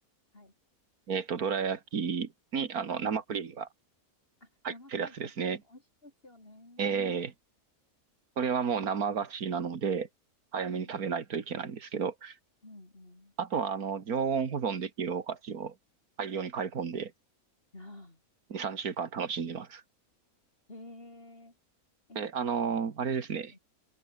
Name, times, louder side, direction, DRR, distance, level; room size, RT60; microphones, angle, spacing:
voice 1, 1.1-3.7 4.6-5.6 6.8-7.3 8.4-10.1 10.5-12.4 13.4-15.7 16.2-17.1 18.5-19.8 22.2-23.5, right 6 dB, 75° right, 2.2 m, -32 dB
voice 2, 4.4-5.3 5.6-7.2 10.7-11.0 12.6-13.3 17.7-18.2 20.7-21.5 22.1-22.2 23.5-23.6, left 2 dB, 40° left, 5.1 m, -51 dB
open air
omnidirectional pair, 1.6 m